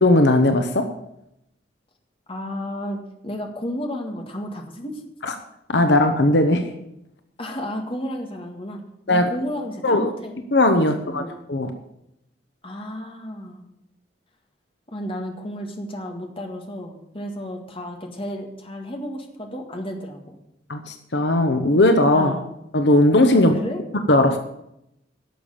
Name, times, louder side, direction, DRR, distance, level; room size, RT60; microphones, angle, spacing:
voice 1, 0.0-0.9 5.7-6.6 9.1-9.3 9.8-10.1 10.5-11.7 20.7-22.4 22.7-23.5 24.1-24.4, left 1 dB, 75° left, 7 dB, 1.0 m, -18 dB
voice 2, 2.3-5.0 7.4-8.8 9.1-10.3 10.8-11.3 12.6-13.6 14.9-20.3 22.1-22.5 23.3-23.8, equal, 30° left, 3 dB, 1.9 m, -32 dB
11.5 x 7.1 x 8.9 m, 0.81 s
head